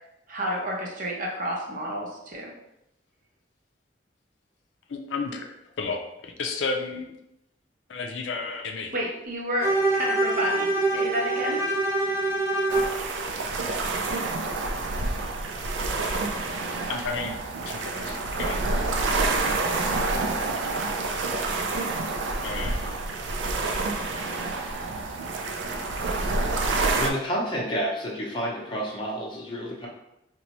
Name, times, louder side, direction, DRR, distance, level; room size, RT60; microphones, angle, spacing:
voice 1, 0.3-2.5 8.9-11.9, equal, 45° right, -1 dB, 0.7 m, -30 dB
voice 2, 4.9-7.2 7.9-8.9 16.8-18.6 21.1-21.2 22.4-22.9, left 4 dB, 85° left, 3 dB, 0.4 m, -33 dB
Bowed string instrument, 9.6-13.0, right 2 dB, 15° right, 0.5 m, -25 dB
sound 1, 12.7-27.1, right 3 dB, 85° right, 0.4 m, -28 dB
voice 3, 27.0-29.9, equal, 25° left, -4 dB, 0.7 m, -29 dB
4.0 x 2.2 x 2.9 m, 0.85 s
head